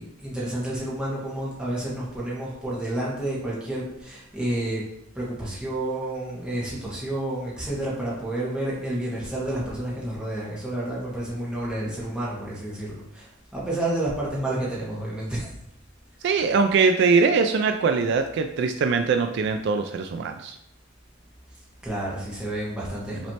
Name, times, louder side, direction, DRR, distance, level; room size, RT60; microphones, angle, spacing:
voice 1, 0.0-4.8 5.1-15.5 21.8-23.3, right 1 dB, 5° right, -7 dB, 1.4 m, -30 dB
voice 2, 16.2-20.6, right 4 dB, 60° right, 6 dB, 0.3 m, -22 dB
5.9 x 3.2 x 2.9 m, 0.77 s
head